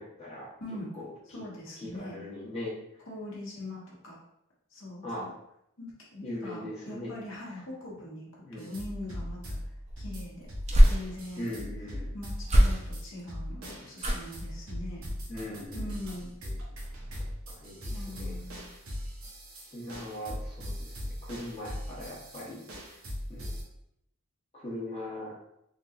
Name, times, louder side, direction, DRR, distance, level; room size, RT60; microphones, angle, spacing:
voice 1, 0.0-0.5 0.9-1.4 1.8-3.0 5.0-5.3 6.2-7.1 8.4-8.7 11.4-12.1 15.3-16.0 16.4-16.6 17.5-18.4 19.6-22.6 23.3-23.5 24.5-25.4, left 1 dB, 30° left, -6 dB, 0.9 m, -40 dB
voice 2, 0.6-0.9 1.3-2.2 3.1-4.2 4.7-5.3 5.8-9.6 10.0-10.5 10.9-11.5 12.1-15.0 15.7-16.3 17.9-18.6, left 1 dB, 65° left, -5 dB, 1.0 m, -42 dB
sound 1, 8.6-23.6, equal, 85° right, 0.9 m, -40 dB
sound 2, 9.9-11.5 12.4-13.2 14.0-14.5 15.0-15.3 15.6-15.7, equal, 30° right, 0.5 m, -24 dB
3.7 x 2.8 x 2.4 m, 0.77 s
head